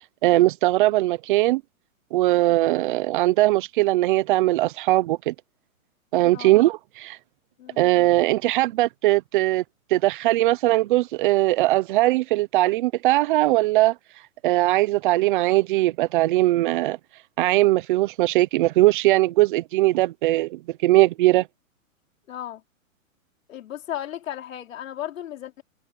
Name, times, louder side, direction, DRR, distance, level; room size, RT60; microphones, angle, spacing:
voice 1, 0.2-1.6 2.1-5.3 6.1-7.2 7.8-9.6 9.9-13.9 14.4-17.0 17.4-21.5, right 17 dB, 35° right, 1.0 m, -20 dB
voice 2, 22.3-22.6 23.5-25.6, left 11 dB, 65° left, 3.9 m, -35 dB
hypercardioid pair, 150°, 42 cm